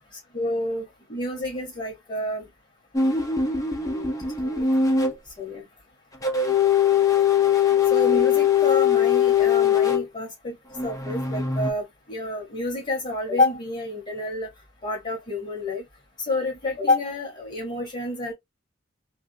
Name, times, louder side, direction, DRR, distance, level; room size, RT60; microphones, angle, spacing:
voice 1, 0.3-2.5 3.8-4.7 5.4-5.6 7.9-10.6 10.8-14.5 14.8-15.8 16.2-18.3, left 2 dB, 35° left, 1.1 m, -28 dB
sound 1, 2.9-5.1 6.2-10.0 10.8-11.7, left 7 dB, 20° left, 0.5 m, -21 dB
3.3 x 2.3 x 2.6 m
head